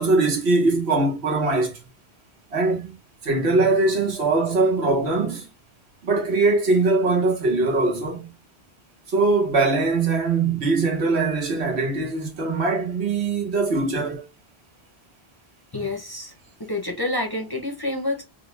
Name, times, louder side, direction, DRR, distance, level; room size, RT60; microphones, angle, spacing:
voice 1, 0.0-1.8 2.5-2.9 3.2-5.5 6.0-8.3 9.1-14.2, right 3 dB, 85° right, 1.3 m, -21 dB
voice 2, 15.7-16.3 16.6-18.2, left 2 dB, 25° left, 0.7 m, -28 dB
3.6 x 2.2 x 3.1 m
omnidirectional pair, 1.1 m